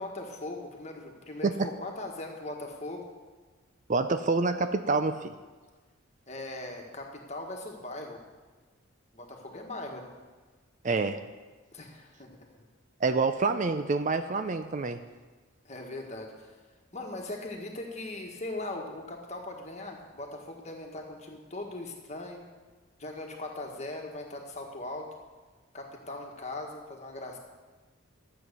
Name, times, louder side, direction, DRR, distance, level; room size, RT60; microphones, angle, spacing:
voice 1, 0.0-3.1 6.3-8.2 9.1-10.1 11.7-12.6 15.6-16.6 16.9-22.4 23.0-25.1 25.7-27.4, left 2 dB, 30° left, 1 dB, 1.6 m, -40 dB
voice 2, 3.9-5.4 10.8-11.2 13.0-15.0, right 3 dB, 35° right, 9 dB, 0.4 m, -27 dB
12.5 x 7.7 x 6.8 m, 1.3 s
head